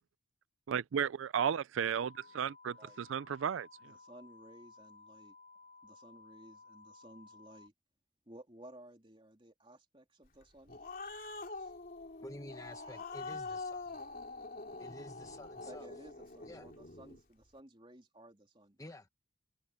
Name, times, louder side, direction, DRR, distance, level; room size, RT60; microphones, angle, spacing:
voice 1, 0.7-3.7, right 8 dB, 85° right, 0.4 m, -34 dB
sound 1, 2.0-7.7, left 4 dB, 60° right, 2.6 m, -58 dB
voice 2, 2.7-3.0 3.8-5.3 5.8-7.7 8.3-10.8 11.5-11.7 15.6-18.8, right 1 dB, 25° right, 3.4 m, -56 dB
Growling, 10.4-17.2, left 3 dB, 45° left, 3.1 m, -45 dB
voice 3, 12.2-14.0 14.8-15.9 16.4-16.7 18.8-19.1, left 1 dB, 15° left, 1.3 m, -50 dB
head